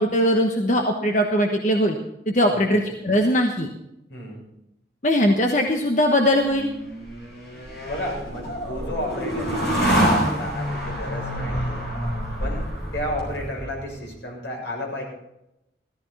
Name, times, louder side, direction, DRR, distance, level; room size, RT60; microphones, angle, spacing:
voice 1, 0.0-2.0 2.3-3.7 5.0-6.7, equal, 45° left, 3 dB, 1.2 m, -20 dB
voice 2, 4.1-4.4 7.9-11.9 12.4-12.7 12.9-15.0, left 1 dB, 80° left, -1 dB, 6.8 m, -32 dB
sound 1, 6.5-13.9, equal, 60° left, 6.0 m, -27 dB
16.0 x 14.0 x 4.2 m, 0.85 s
head